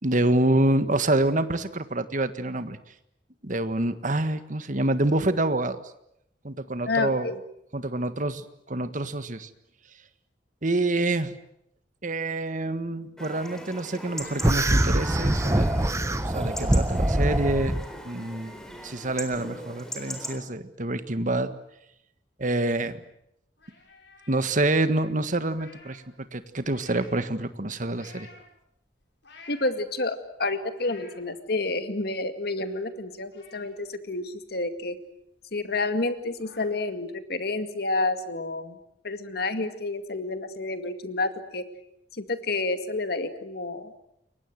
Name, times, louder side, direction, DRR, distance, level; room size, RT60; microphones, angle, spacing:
voice 1, 0.0-2.8 3.4-5.8 6.4-7.3 7.7-9.5 10.6-11.3 12.0-15.7 16.2-17.8 18.0-18.5 18.8-21.5 22.4-23.0 24.3-28.3, right 2 dB, 45° right, 11 dB, 1.6 m, -27 dB
voice 2, 6.9-7.4 29.5-35.0 35.5-38.8 39.0-41.6 42.1-43.9, left 2 dB, 60° left, 9 dB, 2.1 m, -29 dB
Chatter / Livestock farm animals working animals / Chirp tweet, 13.2-20.4, equal, 5° left, 4.1 m, -39 dB
sound 1, 14.4-17.8, right 1 dB, 15° right, 1.1 m, -23 dB
sound 2, 23.6-26.1 26.4-27.3 27.9-28.4 29.0-30.0 30.5-31.2 31.7-31.8 32.1-33.0 33.3-34.8 35.2-35.3 35.6-35.7 36.0-36.7, left 3 dB, 80° left, 8.0 m, -52 dB
29.0 x 23.0 x 7.8 m, 0.77 s
head